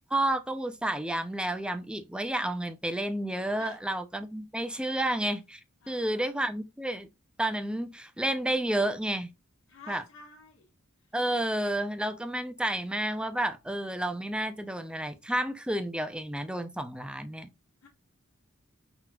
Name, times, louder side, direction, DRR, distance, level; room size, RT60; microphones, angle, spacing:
voice 1, 0.1-5.6 5.9-7.1 7.4-9.3 9.9-10.0 11.1-17.5, right 1 dB, 5° right, 0.5 m, -31 dB
voice 2, 5.8-6.5 9.7-10.7 11.0-11.1 17.8-17.9, left 3 dB, 75° left, 1.5 m, -50 dB
5.9 x 3.0 x 2.3 m
head